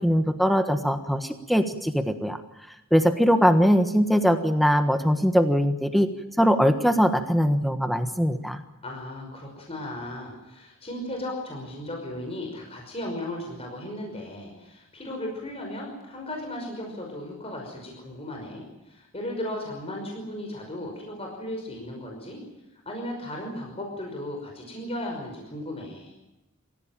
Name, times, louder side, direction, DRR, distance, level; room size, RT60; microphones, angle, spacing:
voice 1, 0.0-2.4 2.9-6.1 6.4-8.6, equal, ahead, 7 dB, 1.3 m, -21 dB
voice 2, 8.8-22.4 22.9-26.1, left 1 dB, 25° left, 1 dB, 5.5 m, -36 dB
26.0 x 16.0 x 9.1 m, 0.98 s
head